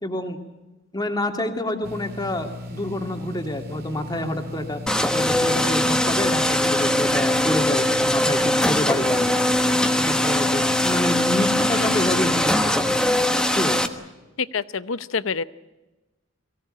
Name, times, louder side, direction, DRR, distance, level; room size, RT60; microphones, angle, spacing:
voice 1, 0.0-0.4 0.9-4.8 5.1-9.2 10.1-12.6 13.6-13.8, left 1 dB, 20° left, 4 dB, 2.4 m, -27 dB
sound 1, 1.8-13.0, left 2 dB, 50° right, 2.7 m, -37 dB
sound 2, 4.9-13.9, left 1 dB, 5° left, 1.2 m, -21 dB
voice 2, 14.4-15.4, left 5 dB, 80° left, 15 dB, 0.8 m, -26 dB
23.5 x 17.0 x 10.0 m, 1.1 s
head